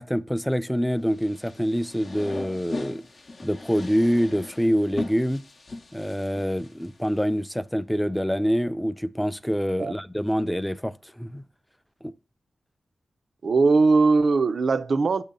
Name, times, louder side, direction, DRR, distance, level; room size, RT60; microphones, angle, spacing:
voice 1, 0.0-3.0 3.4-5.4 5.9-11.4 12.0-12.1, equal, 5° left, 0.4 m, -26 dB
sound 1, 1.1-7.2, left 3 dB, 55° left, 0.6 m, -39 dB
voice 2, 13.4-15.2, right 4 dB, 65° right, 0.4 m, -20 dB
6.7 x 2.8 x 5.1 m
cardioid pair, 50°, 0 cm